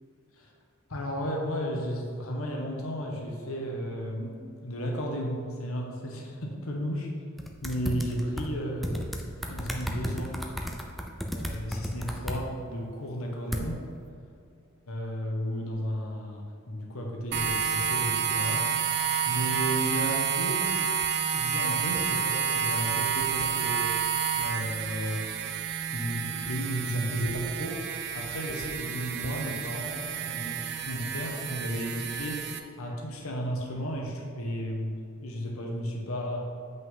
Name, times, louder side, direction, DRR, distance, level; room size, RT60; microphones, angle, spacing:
voice 1, 0.9-7.1 7.6-9.1 9.4-10.4 11.3-13.9 14.9-18.6 19.2-20.7 21.3-24.0 24.4-25.2 25.6-27.8 28.1-32.4 32.8-34.9 35.2-36.5, equal, 80° left, -1 dB, 1.3 m, -33 dB
sound 1, 7.4-8.5 8.8-12.4 13.5-13.6, equal, ahead, 0.5 m, -33 dB
sound 2, 17.3-32.6, right 7 dB, 50° right, 0.5 m, -30 dB
7.7 x 5.6 x 3.8 m, 2.4 s
head